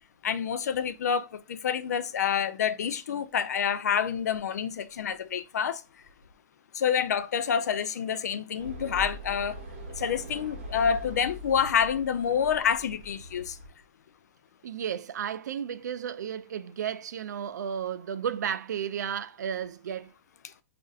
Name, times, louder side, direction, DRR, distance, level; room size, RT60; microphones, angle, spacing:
voice 1, 0.2-5.8 6.7-9.6 10.0-13.6, left 7 dB, 70° left, 0.4 m, -28 dB
sound 1, 8.6-13.7, equal, 35° right, 0.9 m, -42 dB
voice 2, 14.6-20.1, right 8 dB, 80° right, 0.4 m, -33 dB
5.2 x 2.5 x 2.4 m
hypercardioid pair, 180°, 9 cm